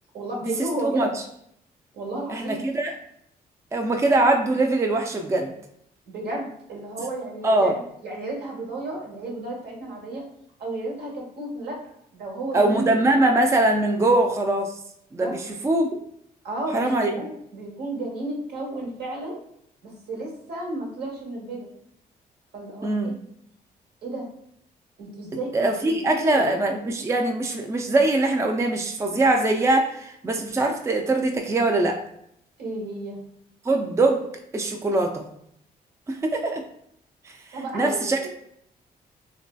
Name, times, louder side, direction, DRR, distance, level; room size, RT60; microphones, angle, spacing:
voice 1, 0.1-1.1 1.9-2.6 6.1-7.7 8.0-10.2 10.6-11.8 12.1-13.0 15.1-15.3 16.4-19.4 19.8-21.7 22.5-23.1 24.0-24.2 25.0-26.5 32.6-33.2 37.5-38.3, right 2 dB, 75° right, -2 dB, 1.0 m, -32 dB
voice 2, 2.3-3.0 3.7-5.5 7.4-7.7 12.5-14.7 15.1-16.0 16.7-17.1 22.8-23.2 25.5-32.0 33.6-34.2 34.5-35.3 36.1-36.6 37.2-37.4 37.7-38.3, right 2 dB, 15° right, 3 dB, 0.4 m, -22 dB
3.1 x 2.6 x 2.2 m, 0.72 s
cardioid pair, 65°, 17 cm